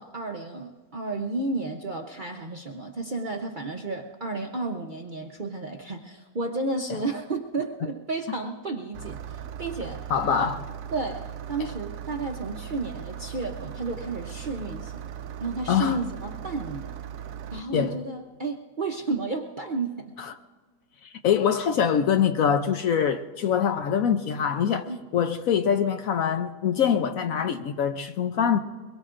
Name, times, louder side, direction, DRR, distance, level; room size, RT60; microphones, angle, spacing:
voice 1, 0.0-10.0 10.3-10.5 10.9-15.1 15.4-17.0 17.5-20.1 24.9-25.0, right 3 dB, 45° right, 0.7 m, -32 dB
Engine starting, 8.9-17.6, right 9 dB, 65° right, 0.9 m, -38 dB
voice 2, 10.1-10.6 11.6-11.7 15.7-16.0 17.7-18.0 20.2-20.3 21.2-24.9 25.1-28.6, left 8 dB, 65° left, 0.9 m, -24 dB
22.5 x 22.0 x 2.5 m
omnidirectional pair, 1.8 m